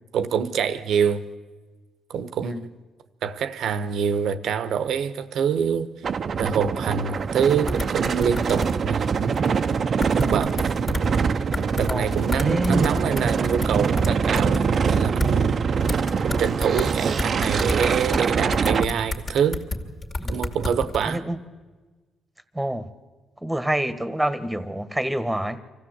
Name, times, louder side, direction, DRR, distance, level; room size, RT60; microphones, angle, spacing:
voice 1, 0.1-1.2 2.1-2.7 3.2-5.9 6.4-9.6 10.1-10.6 11.7-15.6 16.2-19.6 20.3-21.2, right 7 dB, 75° right, 1.1 m, -25 dB
sound 1, 6.0-18.8, right 6 dB, 50° right, 0.8 m, -24 dB
sound 2, 7.7-8.7 9.3-9.5 10.0-11.2 11.5-15.3 15.9-16.9 17.2-21.0, left 2 dB, 35° left, 2.4 m, -30 dB
voice 2, 12.4-12.9 20.2-20.3 21.0-21.4 22.5-22.9 23.4-25.6, right 1 dB, 5° right, 1.5 m, -27 dB
25.0 x 15.5 x 8.1 m
cardioid pair, 90°, 0 cm